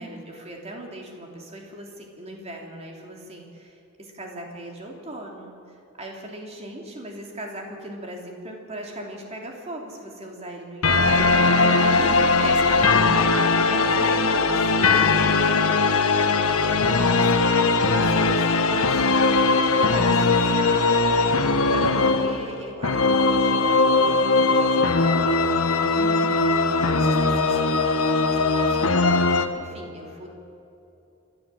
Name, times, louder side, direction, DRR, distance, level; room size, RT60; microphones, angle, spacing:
voice 1, 0.0-13.1 13.7-21.4 21.7-26.5 26.9-30.3, right 1 dB, 30° right, 1 dB, 3.1 m, -39 dB
sound 1, 10.8-29.5, left 3 dB, 75° left, 1.3 m, -20 dB
voice 2, 10.9-14.1 25.8-26.5, right 2 dB, 85° right, 5 dB, 1.9 m, -34 dB
28.5 x 12.0 x 7.6 m, 2.8 s
head